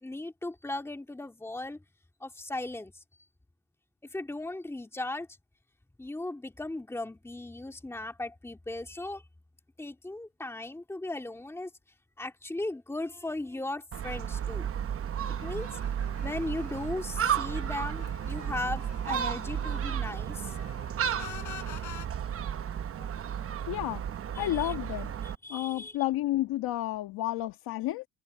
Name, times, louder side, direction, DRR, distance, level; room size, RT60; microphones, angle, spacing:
voice 1, 0.0-1.8 2.2-2.9 4.1-5.3 6.0-9.2 9.8-11.7 12.2-14.7 15.4-15.7 16.2-20.6 21.3-21.5 23.0-23.7 24.4-24.7 25.4-25.9, left 2 dB, 5° left, 2.5 m, -37 dB
Gull seagull, 13.9-25.4, right 9 dB, 40° right, 0.9 m, -33 dB
sound 1, 15.4-20.0 20.3-22.1, left 10 dB, 50° left, 4.5 m, -47 dB
voice 2, 23.7-25.1 25.5-28.1, left 15 dB, 80° left, 1.5 m, -31 dB
cardioid pair, 145°, 36 cm